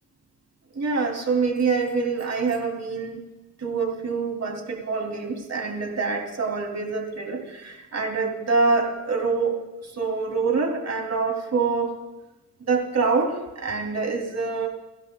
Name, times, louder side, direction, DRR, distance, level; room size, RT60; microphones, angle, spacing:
voice 1, 0.7-3.2 3.6-12.0 12.7-14.7, right 4 dB, 45° right, 3 dB, 3.1 m, -25 dB
28.0 x 12.0 x 2.3 m, 1.1 s
supercardioid pair, 45°, 37 cm